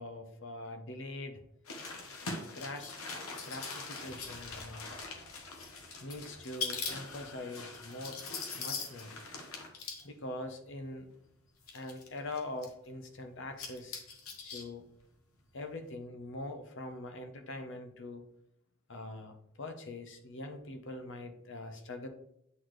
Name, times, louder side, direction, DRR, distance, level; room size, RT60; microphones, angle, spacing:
voice 1, 0.0-1.4 2.3-2.9 3.4-4.9 6.0-8.2 8.6-9.1 10.0-11.1 11.7-14.0 14.4-14.8 15.5-18.3 18.9-19.3 19.6-22.1, left 2 dB, 60° left, 6 dB, 0.9 m, -43 dB
sound 1, 1.6-10.0 10.8-10.9 11.6-12.7 13.4-14.6 14.9-15.0, left 4 dB, 75° left, 1.1 m, -42 dB
8.3 x 4.0 x 3.1 m, 0.75 s
head